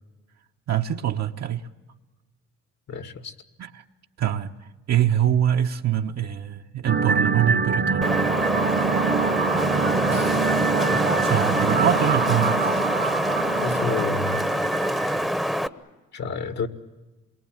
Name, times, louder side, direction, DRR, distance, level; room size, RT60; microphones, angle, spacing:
voice 1, 0.7-1.7 3.6-3.8 4.2-8.1 10.1-10.4 10.9-12.8, right 10 dB, 60° right, 1.1 m, -25 dB
voice 2, 2.9-3.3 13.6-14.4 16.1-16.7, left 5 dB, 60° left, 1.9 m, -29 dB
sound 1, 6.9-15.3, right 5 dB, 40° right, 1.0 m, -25 dB
Wind, 8.0-15.7, equal, ahead, 1.0 m, -25 dB
27.5 x 23.0 x 9.0 m
cardioid pair, 90°, 30 cm